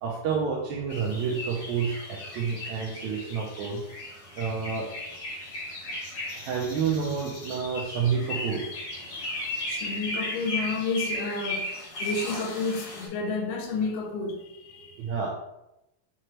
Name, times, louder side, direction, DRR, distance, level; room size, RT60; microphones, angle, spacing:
voice 1, 0.0-3.8 4.4-4.9 6.4-8.6 15.0-15.3, right 6 dB, 80° right, 1.6 m, -29 dB
sound 1, 0.9-13.1, left 2 dB, 45° left, 2.1 m, -36 dB
voice 2, 2.3-2.6 2.8-3.1 9.0-11.7 12.0-15.0, left 3 dB, 80° left, 2.2 m, -32 dB
6.1 x 2.9 x 2.9 m
omnidirectional pair, 3.7 m